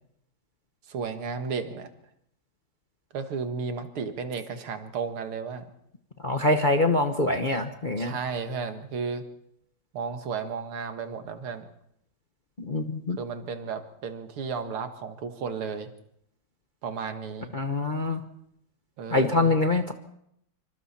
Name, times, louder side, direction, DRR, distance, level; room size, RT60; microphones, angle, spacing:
voice 1, 0.9-1.9 3.1-5.7 8.0-9.2 9.9-11.7 13.2-15.9 16.8-17.5 19.0-19.6, right 5 dB, 85° right, 7 dB, 2.5 m, -33 dB
voice 2, 6.2-8.2 12.6-13.2 17.5-18.2 19.1-19.9, left 2 dB, 35° left, 5 dB, 0.9 m, -24 dB
26.5 x 24.5 x 4.3 m, 0.74 s
omnidirectional pair, 2.3 m